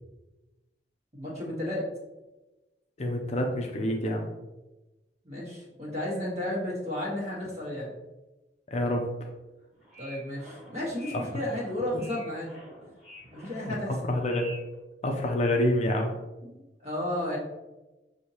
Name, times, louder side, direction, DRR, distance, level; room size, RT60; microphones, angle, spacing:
voice 1, 1.1-1.8 5.2-7.9 10.0-12.5 13.3-14.0 16.4-17.4, left 1 dB, 35° right, -5 dB, 1.5 m, -33 dB
voice 2, 3.0-4.3 8.7-9.1 13.6-13.7 14.1-14.5 15.0-16.1, left 1 dB, 35° left, 2 dB, 0.5 m, -27 dB
Foot pumping a dingy without the necessary O ring, 9.7-14.8, equal, 5° right, 1.5 m, -48 dB
6.2 x 2.7 x 2.8 m, 1.1 s
head